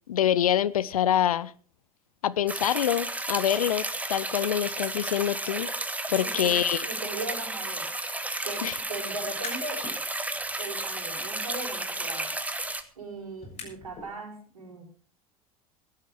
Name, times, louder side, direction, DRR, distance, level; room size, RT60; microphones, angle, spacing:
voice 1, 0.1-1.5 2.2-3.8 4.1-5.7 6.1-6.9 8.6-8.8, left 10 dB, 75° left, 0.7 m, -25 dB
sound 1, 2.5-12.8, right 2 dB, 10° right, 1.6 m, -33 dB
voice 2, 6.2-6.5 6.9-7.9 8.4-9.8 10.6-12.4 12.9-14.9, right 3 dB, 80° right, 5.0 m, -38 dB
sound 2, 9.3-10.0 10.4-14.1, left 4 dB, 35° left, 7.4 m, -46 dB
16.5 x 11.0 x 4.9 m
figure-of-eight pair, 75°, 19 cm